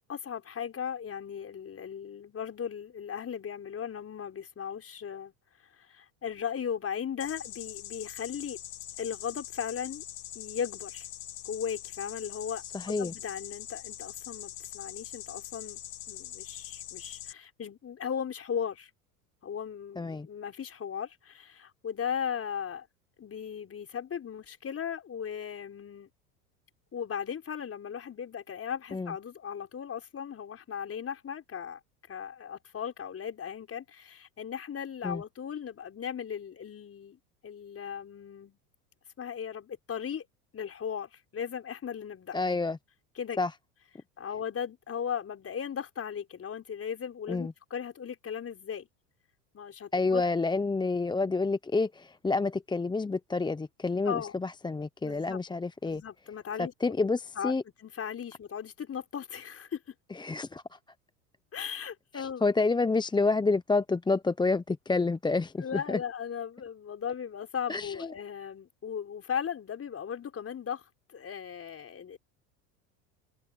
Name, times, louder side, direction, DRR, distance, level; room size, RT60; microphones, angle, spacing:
voice 1, 0.0-5.3 5.8-8.6 9.0-10.0 10.3-11.1 11.4-15.8 16.1-18.9 19.4-22.9 23.2-26.1 26.9-31.8 32.1-37.2 37.4-38.6 39.2-40.2 40.5-42.4 43.1-43.4 44.2-48.9 49.5-50.2 54.0-54.4 55.0-55.4 55.8-56.7 57.4-57.5 57.8-59.9 61.5-62.4 65.6-70.8 71.1-72.2, left 8 dB, 30° left, 5.1 m, -37 dB
sound 1, 7.2-17.3, left 12 dB, 85° left, 1.7 m, -43 dB
voice 2, 12.7-13.1 20.0-20.3 28.9-29.1 35.0-35.2 42.3-42.8 43.4-43.5 47.3-47.5 49.9-56.0 56.6-57.6 60.1-60.8 62.1-66.0 67.7-68.1, left 3 dB, 10° left, 0.8 m, -29 dB
hypercardioid pair, 80°, 46 cm